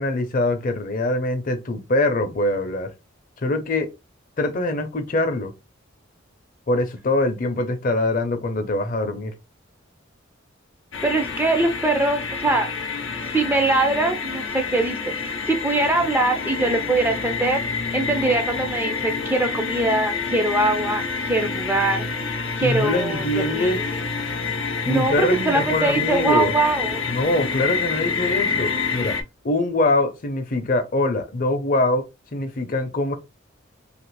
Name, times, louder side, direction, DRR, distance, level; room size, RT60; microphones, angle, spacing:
voice 1, 0.0-2.9 3.4-3.9 4.4-5.5 6.7-9.3 22.6-23.8 24.9-26.5 27.1-29.2 29.4-32.1 32.3-33.2, left 2 dB, 45° left, 0.6 m, -23 dB
sound 1, 10.9-29.2, left 5 dB, 90° left, 0.7 m, -28 dB
voice 2, 11.0-12.7 13.2-15.0 15.2-17.6 17.9-22.0 22.6-23.9 24.9-27.0, right 2 dB, 10° right, 0.4 m, -22 dB
2.8 x 2.5 x 3.1 m
head